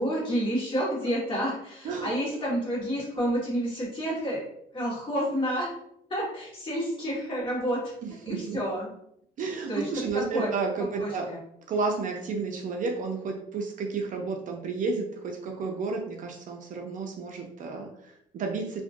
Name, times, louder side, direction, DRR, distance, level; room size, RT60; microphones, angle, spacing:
voice 1, 0.0-4.4 4.7-5.7 6.1-7.8 8.3-8.9 9.7-9.9 10.3-10.5 11.0-11.4, equal, 30° left, -5 dB, 1.5 m, -29 dB
voice 2, 8.0-8.6 9.4-11.3 11.7-18.8, right 4 dB, 50° right, 2 dB, 0.5 m, -32 dB
2.8 x 2.5 x 2.5 m, 0.73 s
cardioid pair, 110°, 17 cm